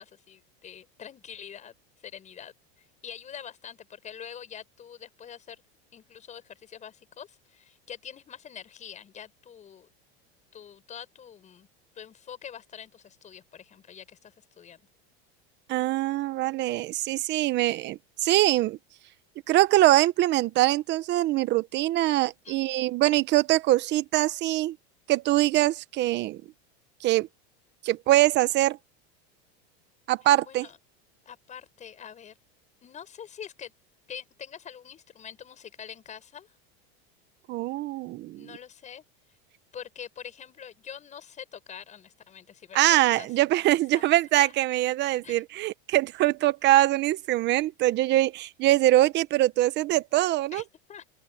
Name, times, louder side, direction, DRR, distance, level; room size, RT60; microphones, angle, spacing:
voice 1, 0.0-1.7 2.0-2.5 2.8-5.6 5.9-9.9 10.5-11.7 11.9-14.8 22.4-22.9 30.4-30.8 31.3-32.3 32.8-33.7 34.1-36.5 38.4-39.0 39.7-43.3 43.6-44.1 44.4-44.5 45.2-45.4 50.5-51.1, left 8 dB, 25° left, 7.4 m, -45 dB
voice 2, 15.7-18.8 19.5-24.8 25.1-26.4 27.0-27.3 27.8-28.8 30.1-30.7 37.5-38.5 42.7-50.6, right 16 dB, 35° right, 1.0 m, -23 dB
open air
supercardioid pair, 150°, 29 cm